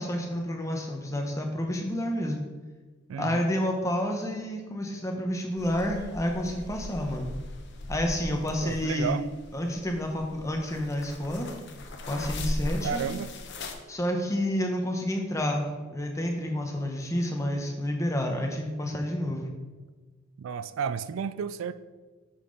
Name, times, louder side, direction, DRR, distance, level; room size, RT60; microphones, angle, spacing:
voice 1, 0.0-2.4 3.2-7.3 7.9-9.2 9.5-11.5 12.1-13.1 13.9-15.7 15.9-19.5, left 1 dB, 15° left, 2 dB, 0.9 m, -29 dB
voice 2, 3.1-3.4 8.6-9.3 12.8-13.3 20.4-21.7, right 6 dB, 75° right, 14 dB, 0.3 m, -32 dB
sound 1, 5.6-13.8, left 1 dB, 55° left, 0.8 m, -38 dB
8.2 x 5.6 x 4.0 m, 1.3 s
head